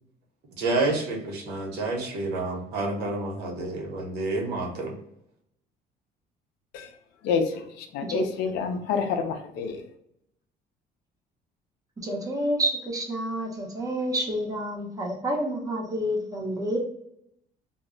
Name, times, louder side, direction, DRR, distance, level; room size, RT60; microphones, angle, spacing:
voice 1, 0.6-4.9, right 2 dB, 75° right, 0.9 m, -29 dB
voice 2, 7.9-9.8, left 6 dB, 90° left, 0.5 m, -27 dB
voice 3, 12.0-16.8, right 1 dB, 20° right, 0.8 m, -29 dB
2.2 x 2.0 x 3.6 m
cardioid pair, 110°, 17 cm